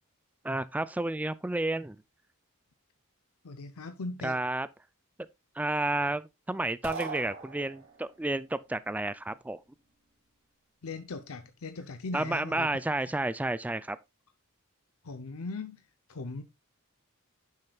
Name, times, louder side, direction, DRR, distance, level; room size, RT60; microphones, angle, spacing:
voice 1, 0.4-2.0 4.2-4.7 5.6-9.6 12.1-14.0, right 2 dB, 5° right, 0.3 m, -31 dB
voice 2, 3.4-4.4 10.8-12.7 13.0-13.1 15.0-15.8 16.1-16.4, left 3 dB, 75° left, 0.7 m, -39 dB
sound 1, 6.8-8.1, right 4 dB, 65° right, 2.5 m, -39 dB
10.0 x 6.4 x 2.3 m
head